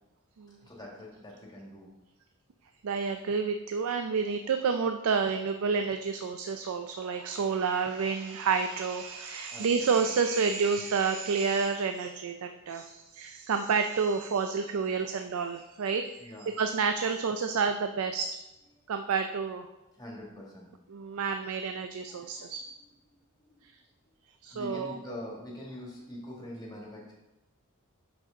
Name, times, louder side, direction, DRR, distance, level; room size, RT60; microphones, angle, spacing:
voice 1, 0.6-1.9 9.5-10.1 14.9-15.1 16.2-16.5 18.7-18.8 19.9-20.7 22.1-22.9 23.4-23.7 24.5-27.1, left 1 dB, 20° left, -2 dB, 1.7 m, -44 dB
voice 2, 2.8-16.1 16.6-18.3 18.9-19.7 20.9-22.6 24.4-24.9, right 5 dB, 90° right, 7 dB, 0.4 m, -29 dB
6.4 x 6.1 x 3.7 m, 0.98 s
head